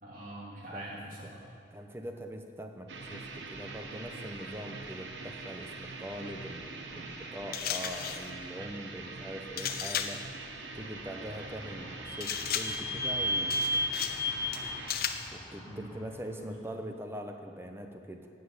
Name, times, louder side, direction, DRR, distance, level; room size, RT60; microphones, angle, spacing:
voice 1, 0.0-1.4 15.6-16.1 16.4-16.6, right 1 dB, 50° right, -5 dB, 3.2 m, -43 dB
voice 2, 1.7-10.2 10.7-13.8 15.3-18.3, equal, 15° right, 4 dB, 0.9 m, -42 dB
sound 1, 2.9-15.0, right 3 dB, 85° right, 1.2 m, -43 dB
sound 2, 7.5-8.3 9.6-10.3 12.2-12.9 13.5-14.3 14.5-15.3, left 9 dB, 55° left, 0.7 m, -35 dB
Vehicle / Squeak, 10.6-16.2, left 1 dB, 20° left, 1.3 m, -35 dB
12.5 x 8.0 x 8.2 m, 2.4 s
head